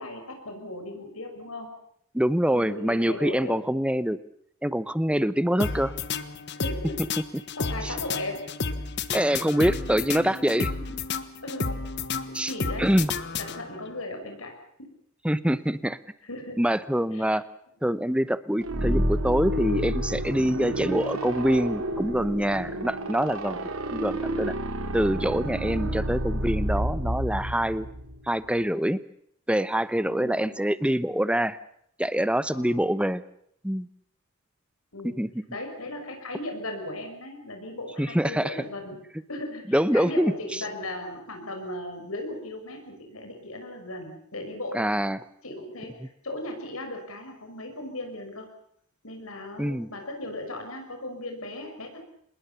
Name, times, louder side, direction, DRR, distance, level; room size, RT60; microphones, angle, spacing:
voice 1, 0.0-1.7 2.5-3.6 6.5-7.0 7.3-8.9 11.4-11.8 12.3-12.9 13.4-14.9 16.2-16.6 17.1-17.4 22.7-22.9 23.5-23.8 30.1-30.6 32.5-32.8 34.9-35.1 35.5-39.0 39.3-44.8 45.4-48.5 49.0-52.0, left 1 dB, 80° left, 4 dB, 6.4 m, -37 dB
voice 2, 2.1-4.2 4.6-5.9 9.1-10.7 12.3-12.5 12.8-13.1 15.2-16.0 16.6-17.4 17.8-23.6 23.9-24.5 24.9-27.9 28.3-29.0 29.5-31.6 32.0-33.2 33.6-33.9 35.0-35.3 38.0-38.5 39.7-40.3 44.7-45.2 49.6-49.9, equal, 5° right, 15 dB, 0.9 m, -25 dB
sound 1, 5.6-13.9, left 4 dB, 55° left, 1.4 m, -32 dB
sound 2, 18.6-28.3, right 1 dB, 75° right, 3.6 m, -30 dB
26.5 x 21.0 x 7.2 m, 0.69 s
head